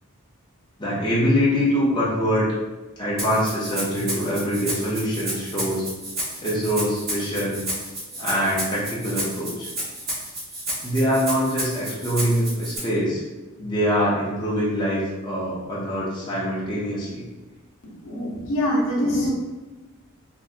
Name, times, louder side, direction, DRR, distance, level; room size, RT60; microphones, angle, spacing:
voice 1, 0.8-2.5 3.0-5.8 6.4-7.6 8.2-9.7 10.8-13.2 13.6-17.2, equal, 20° left, -7 dB, 0.6 m, -24 dB
Rattle (instrument), 3.2-12.8, right 1 dB, 45° right, 1.1 m, -31 dB
voice 2, 17.8-19.3, equal, 60° left, -3 dB, 0.7 m, -24 dB
3.5 x 2.7 x 2.5 m, 1.2 s
head